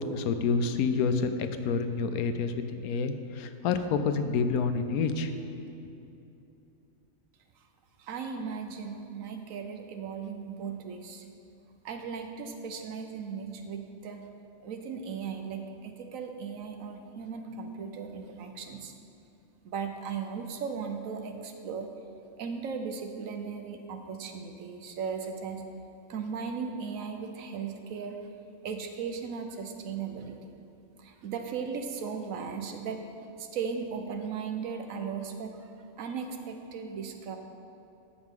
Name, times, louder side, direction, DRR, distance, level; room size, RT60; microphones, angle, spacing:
voice 1, 0.1-5.4, left 5 dB, 85° left, 9 dB, 1.1 m, -28 dB
voice 2, 8.0-11.2 11.8-14.3 14.6-18.9 19.6-21.9 22.4-25.6 26.1-28.2 28.6-30.4 31.0-33.0 33.4-35.7 36.0-37.4, right 6 dB, 70° right, 5 dB, 1.1 m, -37 dB
14.0 x 6.0 x 3.7 m, 2.7 s
omnidirectional pair, 1.5 m